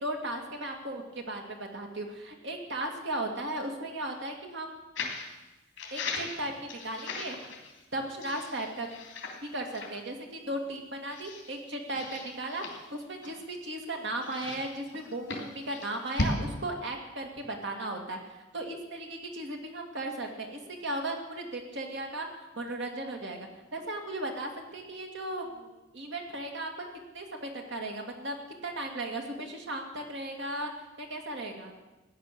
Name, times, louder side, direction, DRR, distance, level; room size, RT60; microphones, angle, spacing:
voice 1, 0.0-4.8 5.9-7.4 7.9-8.9 9.5-22.3 22.6-26.9 27.1-28.4 28.6-30.7 31.0-31.7, right 1 dB, 65° right, 2 dB, 2.4 m, -36 dB
sound 1, 5.0-5.3 5.8-7.8 8.2-9.5 9.7-9.9 10.5-10.6 11.1-11.5 11.9-13.6 14.2-16.4, left 2 dB, 65° left, 3.1 m, -37 dB
16.0 x 10.5 x 6.8 m, 1.1 s
head